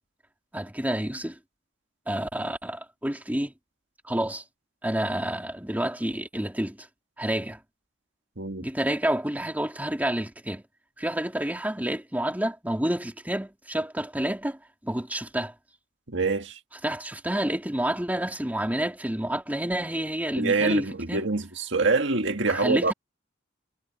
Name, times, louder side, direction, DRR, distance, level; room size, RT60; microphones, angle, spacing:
voice 1, 0.5-1.4 2.1-3.5 4.0-4.4 4.8-6.9 7.2-7.6 8.6-10.6 11.0-15.5 16.8-21.3 22.5-22.9, right 1 dB, 10° right, 2.7 m, -29 dB
voice 2, 16.1-16.6 20.4-22.9, right 3 dB, 65° right, 1.9 m, -25 dB
head